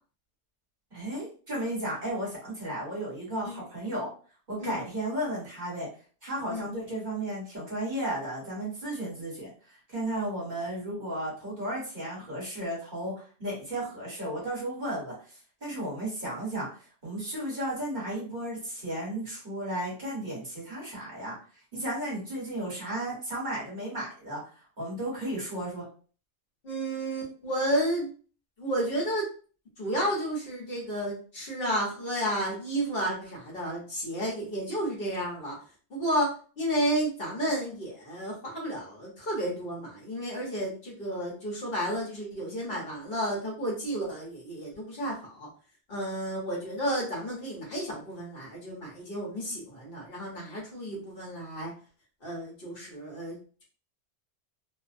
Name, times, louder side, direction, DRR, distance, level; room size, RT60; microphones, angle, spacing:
voice 1, 0.9-4.1 4.5-5.9 6.2-9.5 9.9-13.1 13.4-16.7 17.0-21.3 21.7-24.4 24.8-25.9, right 1 dB, 40° right, -6 dB, 1.2 m, -34 dB
voice 2, 26.6-28.1 28.6-29.3 29.8-35.6 35.9-45.5 45.9-51.7 52.2-53.6, right 1 dB, 55° left, -4 dB, 1.1 m, -32 dB
2.6 x 2.1 x 2.5 m, 0.39 s
omnidirectional pair, 1.2 m